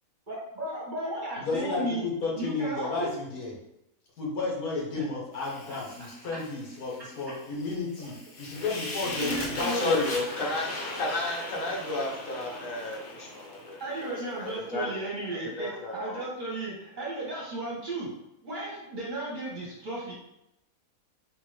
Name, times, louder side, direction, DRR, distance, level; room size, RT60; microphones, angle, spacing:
voice 1, 0.3-2.0 2.4-3.1 5.0-5.1 5.7-5.8 9.0-9.9 13.8-18.1 18.4-20.1, right 1 dB, 40° right, -5 dB, 0.9 m, -34 dB
voice 2, 1.4-3.5 4.2-10.0, left 3 dB, 85° left, -3 dB, 1.5 m, -32 dB
Fire, 5.3-14.6, left 2 dB, 45° left, 0.9 m, -39 dB
voice 3, 9.7-15.1 15.4-16.3, left 2 dB, 65° left, 0 dB, 1.1 m, -33 dB
3.8 x 2.6 x 3.1 m, 0.83 s
omnidirectional pair, 1.5 m